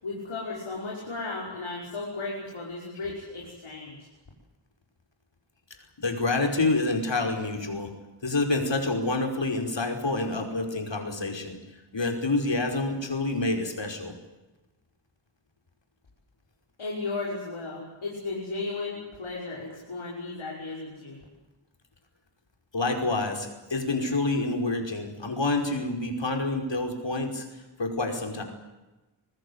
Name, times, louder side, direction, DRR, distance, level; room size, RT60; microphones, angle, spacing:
voice 1, 0.0-4.1 16.8-21.2, left 3 dB, 80° left, -4 dB, 6.1 m, -35 dB
voice 2, 6.0-7.9 8.2-11.6 11.9-14.1 22.7-28.4, left 2 dB, 65° left, 4 dB, 5.3 m, -28 dB
25.0 x 20.0 x 8.3 m, 1.1 s
wide cardioid pair, 50°, 48 cm